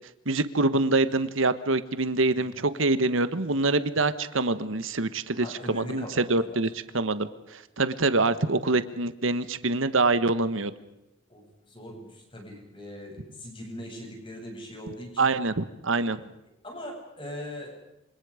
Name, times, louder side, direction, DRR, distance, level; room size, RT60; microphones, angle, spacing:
voice 1, 0.3-6.7 6.9-10.7 15.2-16.2, right 3 dB, 75° right, 13 dB, 1.3 m, -25 dB
voice 2, 5.3-6.6 11.3-15.3 16.6-17.8, left 1 dB, 25° left, 1 dB, 7.9 m, -40 dB
28.0 x 26.0 x 5.1 m, 0.91 s
head